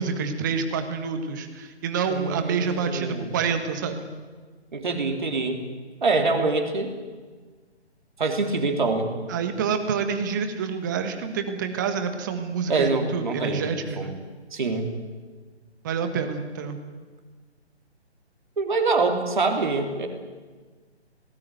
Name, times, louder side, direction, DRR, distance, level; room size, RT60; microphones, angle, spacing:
voice 1, 0.0-4.1 9.3-14.1 15.8-16.8, right 6 dB, 15° right, 7 dB, 1.6 m, -27 dB
voice 2, 2.1-3.3 4.7-5.6 6.0-6.9 8.2-9.1 12.7-13.7 14.0-14.1 14.5-14.9 18.6-20.1, right 3 dB, 45° right, 4 dB, 3.6 m, -25 dB
27.0 x 18.5 x 9.5 m, 1.4 s
figure-of-eight pair, 145°, 34 cm